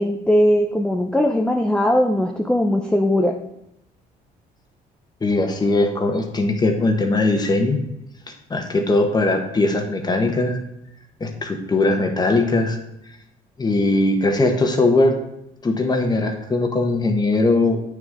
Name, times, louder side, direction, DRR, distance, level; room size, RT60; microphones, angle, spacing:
voice 1, 0.0-3.4, left 1 dB, 5° left, 2 dB, 0.6 m, -19 dB
voice 2, 5.2-7.8 8.3-10.6 11.2-12.8 13.6-15.2 15.6-17.8, left 2 dB, 25° left, 4 dB, 1.1 m, -20 dB
9.1 x 6.4 x 3.6 m, 0.81 s
cardioid pair, 110°, 17 cm